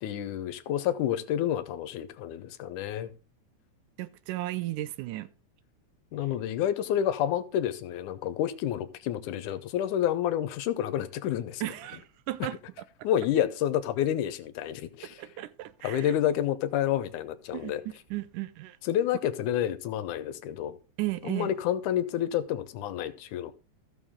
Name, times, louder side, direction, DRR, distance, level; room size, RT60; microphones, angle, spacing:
voice 1, 0.0-3.1 6.1-11.6 12.4-12.5 13.0-15.2 15.8-17.8 18.8-20.8 21.2-23.5, left 10 dB, 80° left, 2.3 m, -29 dB
voice 2, 4.0-5.3 11.6-12.6 15.2-16.1 17.5-17.7 18.1-18.8 21.0-21.5, right 17 dB, 85° right, 2.3 m, -34 dB
14.5 x 6.8 x 3.6 m
omnidirectional pair, 3.5 m